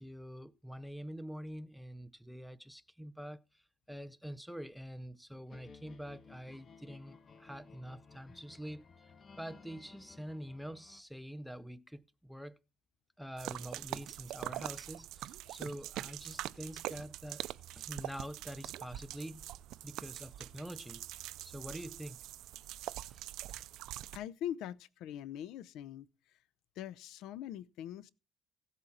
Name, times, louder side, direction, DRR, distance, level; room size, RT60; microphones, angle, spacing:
voice 1, 0.0-12.6 13.2-17.4 17.8-19.5 19.8-22.2 23.1-23.2 23.5-23.6, equal, ahead, 0.6 m, -46 dB
sound 1, 5.5-11.0, left 5 dB, 35° left, 1.2 m, -57 dB
sound 2, 13.4-24.2, right 14 dB, 80° right, 0.5 m, -44 dB
voice 2, 24.1-26.1 26.8-28.1, left 11 dB, 80° left, 0.6 m, -42 dB
16.0 x 8.2 x 4.2 m
cardioid pair, 110°, 0 cm